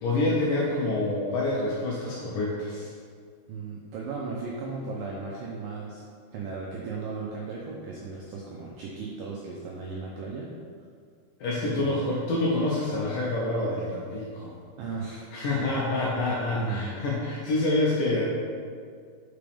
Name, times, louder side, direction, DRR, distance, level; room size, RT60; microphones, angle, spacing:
voice 1, 0.0-2.9 11.4-14.5 15.3-18.2, left 2 dB, 80° left, -5 dB, 2.0 m, -27 dB
voice 2, 3.5-6.1 6.3-10.5 11.8-11.9 14.8-15.3 16.6-16.9, right 4 dB, 85° right, -3 dB, 1.9 m, -36 dB
5.9 x 5.0 x 3.4 m, 2.1 s
omnidirectional pair, 4.5 m